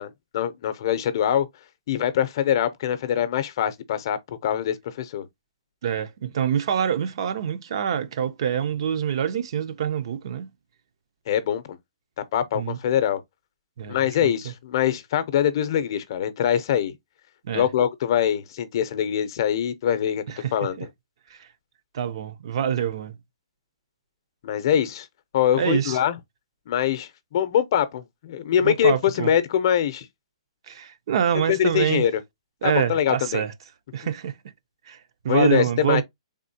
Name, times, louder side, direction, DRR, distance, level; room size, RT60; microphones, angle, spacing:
voice 1, 0.0-1.5 1.9-5.3 11.3-11.8 12.3-13.2 13.9-16.9 17.5-20.2 20.5-20.9 24.4-25.1 25.3-26.2 26.7-30.1 31.5-32.2 32.6-33.4 35.3-36.0, left 9 dB, 45° left, 0.6 m, -23 dB
voice 2, 5.8-10.5 12.5-12.8 13.8-14.5 17.4-17.7 20.3-20.5 20.8-20.9 21.3-21.4 21.9-23.2 25.6-26.0 28.6-29.3 30.7-32.0 32.6-33.5 33.9-34.3 34.9-35.0 35.2-36.0, right 8 dB, 50° right, 0.6 m, -26 dB
4.2 x 3.6 x 2.6 m
hypercardioid pair, 165°, 3 cm